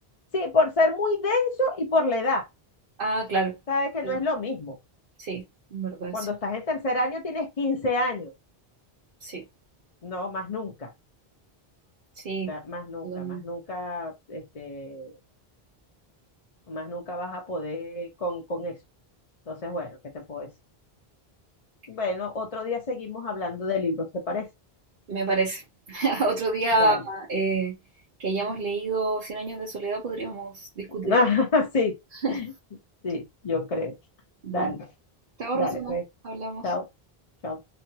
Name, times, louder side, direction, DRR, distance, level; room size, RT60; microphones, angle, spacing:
voice 1, 0.3-2.5 3.7-4.8 6.1-8.3 10.0-10.9 12.4-15.2 16.7-18.8 19.5-20.5 21.9-24.5 26.8-27.0 31.0-32.0 32.3-32.5 33.0-33.9 34.5-34.9 35.5-36.0 36.6-36.9 37.4-37.6, left 2 dB, 40° left, 0.7 m, -28 dB
voice 2, 3.0-3.6 4.0-4.2 5.2-5.4 5.7-6.3 9.2-9.4 12.1-12.5 13.0-13.4 25.1-25.6 25.9-27.7 28.2-31.1 32.2-32.4 34.4-34.7 35.4-36.0 36.2-36.7, right 3 dB, 60° right, 1.0 m, -28 dB
3.1 x 2.5 x 2.7 m
omnidirectional pair, 1.0 m